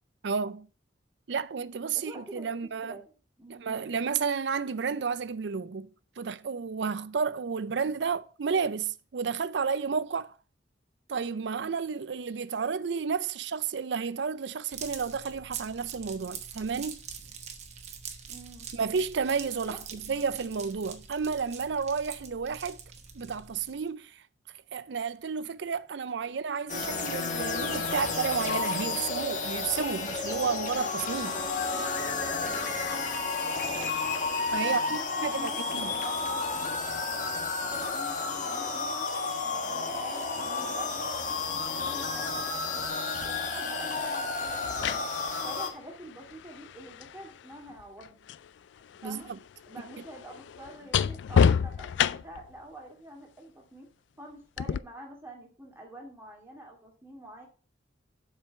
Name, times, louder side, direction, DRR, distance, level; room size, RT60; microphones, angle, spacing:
voice 1, 0.2-0.7 1.3-3.0 3.5-5.9 6.2-10.3 11.1-17.0 18.7-22.8 23.1-24.2 24.7-31.4 34.5-35.9 49.0-49.4, right 5 dB, 70° right, 0.5 m, -31 dB
voice 2, 1.9-3.7 18.3-18.8 19.7-19.8 33.8-34.0 34.6-35.6 35.9-36.5 37.9-39.1 39.4-45.0 45.4-48.3 49.0-49.3 49.7-53.9 54.2-57.5, right 1 dB, 10° right, 2.2 m, -47 dB
sound 1, 14.7-23.9, right 6 dB, 35° right, 1.0 m, -44 dB
sound 2, 26.7-45.7, left 4 dB, 40° left, 1.3 m, -31 dB
sound 3, 43.2-43.4 44.5-48.5 48.8-52.5 54.6-54.8, left 7 dB, 70° left, 0.3 m, -29 dB
7.4 x 4.8 x 5.8 m
head